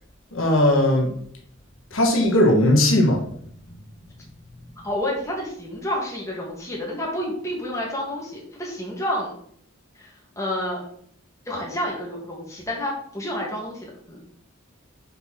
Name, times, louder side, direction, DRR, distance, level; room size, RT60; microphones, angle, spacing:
voice 1, 0.3-1.2 1.9-3.2, left 1 dB, 75° left, 1 dB, 1.4 m, -18 dB
voice 2, 4.8-9.3 9.9-10.8 11.4-14.2, left 1 dB, 15° left, -3 dB, 1.8 m, -29 dB
5.4 x 4.3 x 5.9 m, 0.65 s
head